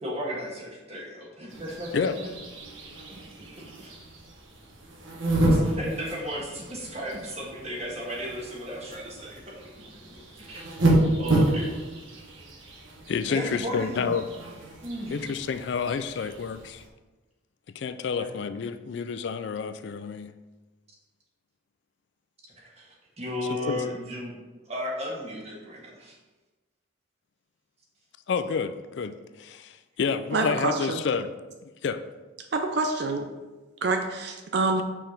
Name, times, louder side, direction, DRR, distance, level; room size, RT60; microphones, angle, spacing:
voice 1, 0.0-2.3 3.1-3.2 3.5-3.9 5.4-9.9 10.4-10.7 11.2-11.8 13.3-14.2 14.8-15.2 18.1-18.3 22.6-24.4 24.6-26.2, equal, 30° right, 1.5 m, -35 dB
sound 1, 1.5-16.9, right 1 dB, 75° right, 1.3 m, -30 dB
voice 2, 13.1-14.3 15.1-16.8 17.8-20.3 23.5-23.8 28.3-29.1 29.4-31.3 31.8-32.0, left 5 dB, 60° left, 0.3 m, -29 dB
voice 3, 30.3-31.0 32.5-33.3 33.8-34.8, right 3 dB, 55° right, 0.5 m, -26 dB
5.7 x 4.6 x 5.0 m
head